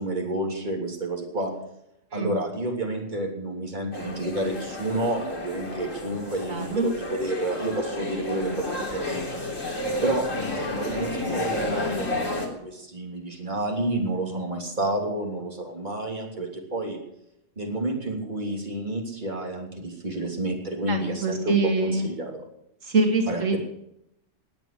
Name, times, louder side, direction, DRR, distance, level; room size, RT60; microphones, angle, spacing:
voice 1, 0.0-1.5 2.1-9.3 10.0-17.0 17.6-21.6 21.8-22.4 23.3-23.6, right 1 dB, 35° right, 0 dB, 3.4 m, -30 dB
sound 1, 3.9-12.5, left 1 dB, 85° left, 3.8 m, -31 dB
voice 2, 6.5-6.9 20.9-22.1 22.8-23.6, right 3 dB, 85° right, 3 dB, 2.3 m, -24 dB
19.5 x 9.1 x 6.8 m, 0.79 s
omnidirectional pair, 1.3 m